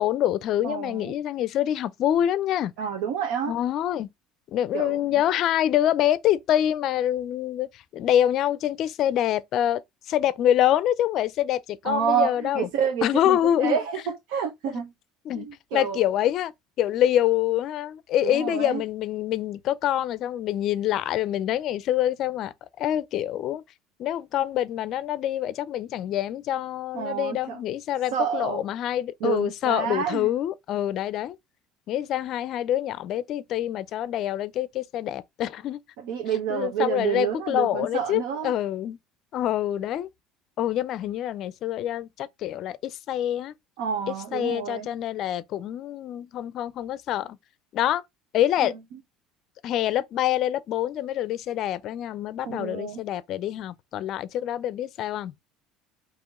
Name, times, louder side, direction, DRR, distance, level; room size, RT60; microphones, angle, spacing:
voice 1, 0.0-2.7 3.5-4.1 4.5-12.7 13.0-13.8 15.2-15.5 15.7-16.5 16.8-23.6 24.0-31.4 31.9-35.8 36.5-39.0 39.3-40.1 40.6-43.5 44.1-47.4 47.7-48.0 48.3-48.8 49.6-55.3, left 11 dB, 50° left, 0.5 m, -26 dB
voice 2, 0.6-1.1 2.8-3.5 4.7-5.0 11.8-14.9 15.3-16.1 18.2-18.8 26.9-27.6 28.1-28.6 29.2-30.3 36.0-38.5 43.8-44.9 48.6-48.7 52.5-53.0, right 8 dB, 80° right, 1.0 m, -29 dB
4.9 x 3.0 x 3.6 m
cardioid pair, 135°, 0 cm